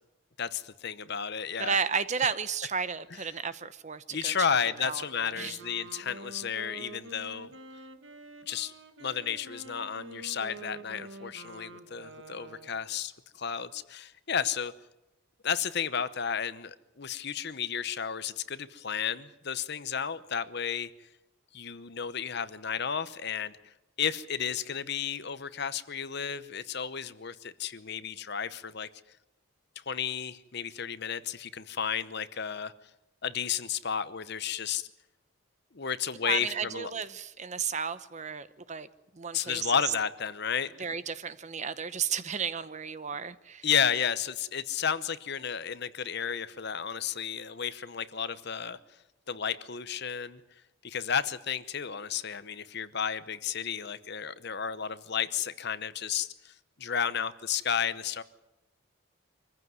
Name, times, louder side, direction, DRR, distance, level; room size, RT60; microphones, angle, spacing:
voice 1, 0.4-1.8 4.1-7.5 8.5-8.7 9.0-14.7 15.4-20.9 21.5-23.7 24.0-28.9 29.9-32.7 33.2-34.9 35.7-36.9 39.3-40.9 43.6-48.8 49.3-50.4 50.8-58.2, left 7 dB, 50° left, 14 dB, 0.9 m, -32 dB
voice 2, 1.6-4.3 4.8-5.0 5.4-5.6 36.2-38.9 39.1-39.9 40.8-43.7, right 6 dB, 35° right, 14 dB, 0.8 m, -33 dB
Wind instrument woodwind instrument, 5.0-12.9, right 3 dB, 60° right, 1.7 m, -47 dB
24.5 x 15.0 x 9.5 m, 0.95 s
head